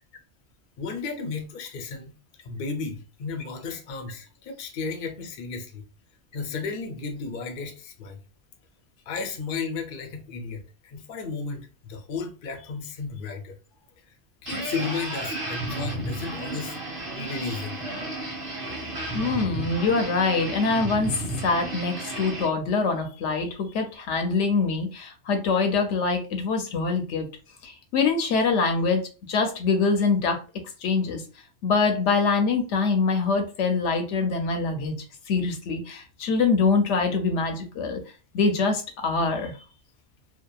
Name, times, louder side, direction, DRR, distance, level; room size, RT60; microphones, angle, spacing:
voice 1, 0.8-2.1 2.4-5.8 6.3-8.2 9.1-13.5 14.4-16.8 17.1-17.8, left 4 dB, 60° left, 0.6 m, -34 dB
sound 1, 14.5-22.5, right 1 dB, 30° right, 1.1 m, -33 dB
voice 2, 19.1-21.1 21.4-27.3 27.6-29.0 29.3-30.4 30.8-31.2 31.6-35.0 35.3-38.0 38.3-39.6, left 4 dB, 85° left, 0.9 m, -24 dB
2.7 x 2.1 x 2.2 m
omnidirectional pair, 1.2 m